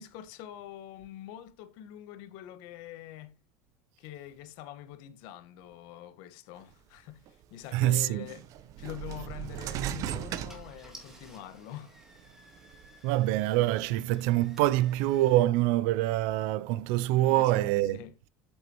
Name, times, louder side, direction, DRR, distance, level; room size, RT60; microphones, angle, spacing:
voice 1, 0.0-3.3 4.0-7.2 7.5-8.5 8.8-11.9 17.2-18.1, left 12 dB, 70° left, 1.4 m, -45 dB
sound 1, 7.3-7.4 8.3-11.4 11.9-12.9, right 11 dB, 50° right, 0.8 m, -37 dB
voice 2, 7.7-8.3 13.0-18.0, right 15 dB, 75° right, 0.5 m, -25 dB
Car / Engine starting, 9.4-9.6 10.2-10.3 10.5-15.4, equal, 5° right, 2.3 m, -55 dB
7.9 x 7.8 x 3.0 m
cardioid pair, 135°, 7 cm